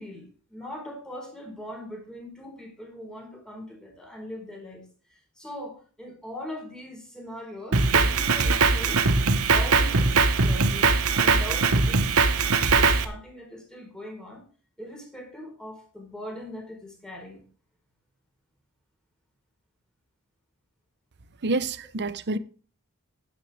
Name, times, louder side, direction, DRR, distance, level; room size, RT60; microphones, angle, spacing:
voice 1, 0.0-9.1 9.5-12.1 12.7-14.4 14.8-17.4, left 1 dB, 5° left, 4.2 m, -40 dB
Drum kit, 7.7-13.0, right 4 dB, 70° right, 1.2 m, -21 dB
voice 2, 21.4-22.4, right 3 dB, 50° right, 0.8 m, -27 dB
11.5 x 10.5 x 3.5 m
head